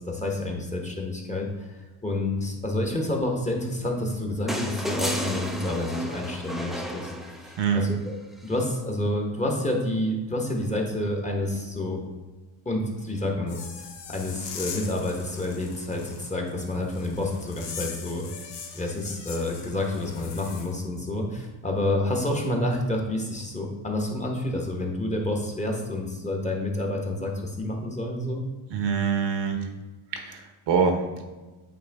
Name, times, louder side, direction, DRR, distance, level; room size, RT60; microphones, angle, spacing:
voice 1, 0.0-8.1 8.4-12.0 12.6-13.7 14.1-18.5 18.7-28.4, left 1 dB, 15° left, 0 dB, 1.2 m, -29 dB
sound 1, 4.5-7.8 9.3-9.4, equal, ahead, 0.5 m, -32 dB
voice 2, 7.6-7.9 28.7-29.7 30.1-31.2, right 6 dB, 60° right, 5 dB, 1.1 m, -25 dB
sound 2, 13.5-20.7, left 6 dB, 60° left, 1.1 m, -41 dB
8.8 x 3.3 x 3.5 m, 1.2 s
cardioid pair, 105°, 47 cm